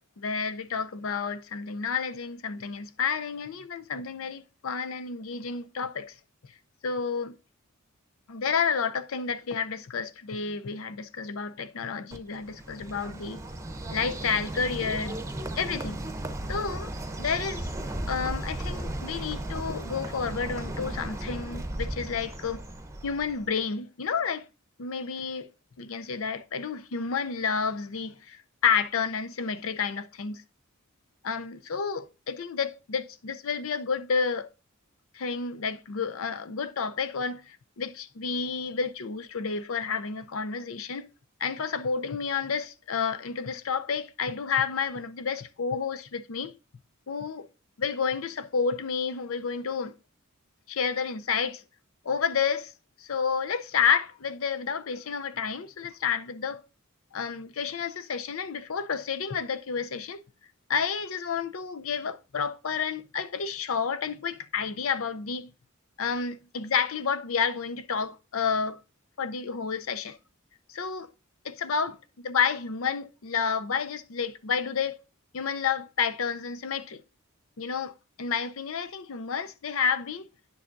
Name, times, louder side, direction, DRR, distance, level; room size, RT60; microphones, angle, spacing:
voice 1, 0.2-6.1 6.8-7.3 8.3-13.4 13.9-15.2 15.6-16.0 16.5-16.9 17.2-17.7 18.1-22.6 23.0-24.5 24.8-25.5 25.8-30.4 31.2-34.5 35.1-41.1 41.4-46.5 47.1-47.5 47.8-49.9 50.7-51.6 52.0-52.7 53.0-56.6 57.1-60.2 60.7-65.5 66.0-68.8 69.2-70.2 70.7-71.1 71.4-75.0 75.3-77.0 77.6-80.3, left 6 dB, 75° left, 0.6 m, -30 dB
Bird, 12.1-23.5, right 1 dB, 15° right, 0.8 m, -35 dB
9.7 x 7.0 x 2.6 m
head